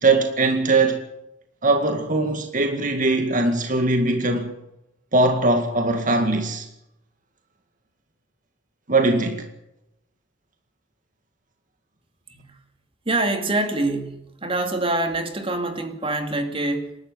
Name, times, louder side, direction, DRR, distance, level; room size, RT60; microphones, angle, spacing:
voice 1, 0.0-1.1 1.6-4.5 5.1-6.7 8.9-9.5, right 2 dB, 45° right, 2.1 m, -20 dB
voice 2, 13.1-17.0, right 2 dB, 30° right, 2.5 m, -25 dB
27.5 x 12.5 x 8.0 m
head